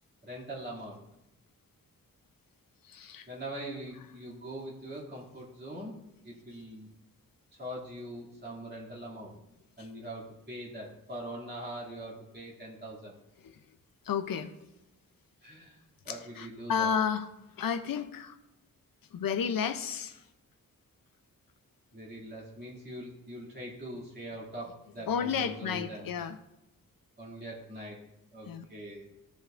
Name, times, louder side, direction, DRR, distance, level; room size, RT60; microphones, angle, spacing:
voice 1, 0.2-1.0 3.3-6.0 6.2-6.9 7.6-9.4 9.8-13.1 15.4-15.8 16.0-16.9 21.9-26.1 27.2-28.0 28.3-29.1, right 1 dB, 30° right, -5 dB, 2.6 m, -42 dB
voice 2, 2.8-3.3 9.8-9.9 13.4-13.5 14.0-14.5 16.1-17.3 17.6-18.4 19.1-20.2 25.1-26.4 28.5-28.6, left 7 dB, 75° left, 9 dB, 0.6 m, -32 dB
14.5 x 5.2 x 2.5 m, 0.92 s
wide cardioid pair, 170°, 35 cm